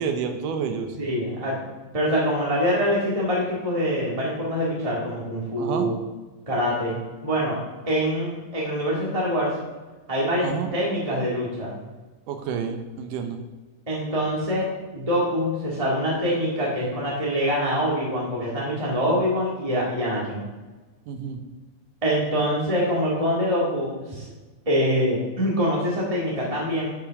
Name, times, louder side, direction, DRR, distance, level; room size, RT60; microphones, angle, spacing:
voice 1, 0.0-1.0 5.6-5.9 10.4-10.7 12.3-13.4 21.1-21.4, right 6 dB, 75° right, 6 dB, 2.3 m, -29 dB
voice 2, 1.0-1.5 1.9-5.9 6.5-7.0 7.2-7.6 7.9-9.5 10.1-11.7 13.9-14.7 14.9-20.4 22.0-24.3 24.6-26.9, equal, 15° right, -5 dB, 1.3 m, -24 dB
12.0 x 5.5 x 5.9 m, 1.2 s
omnidirectional pair, 4.0 m